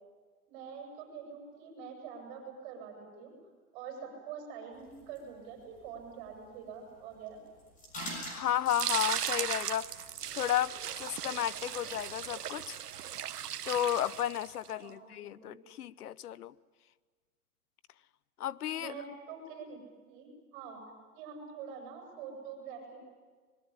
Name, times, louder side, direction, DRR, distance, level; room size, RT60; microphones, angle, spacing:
voice 1, 0.5-3.3 3.7-7.4 14.7-15.6 18.7-19.8 20.1-20.8 21.1-23.0, right 6 dB, 35° right, 2 dB, 7.8 m, -45 dB
sound 1, 4.7-12.4, equal, 15° left, 6.7 m, -49 dB
voice 2, 8.3-10.1 10.3-12.8 13.7-16.5 18.4-18.9, left 11 dB, 80° left, 20 dB, 0.9 m, -33 dB
sound 2, 8.7-14.7, right 10 dB, 90° right, 1.4 m, -37 dB
24.5 x 21.5 x 9.9 m, 1.5 s
hypercardioid pair, 155°, 45 cm